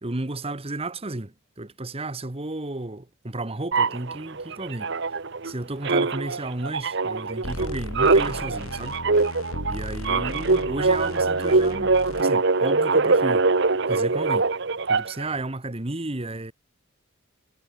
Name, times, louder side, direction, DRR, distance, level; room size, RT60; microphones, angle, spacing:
voice 1, 0.0-4.9 5.4-9.0 9.7-13.5 13.9-14.5 14.9-16.5, right 2 dB, 30° right, 1.2 m, -33 dB
sound 1, 3.7-5.5 5.8-15.3, right 3 dB, 55° right, 1.1 m, -23 dB
sound 2, 7.4-12.2, left 1 dB, 90° left, 5.5 m, -36 dB
head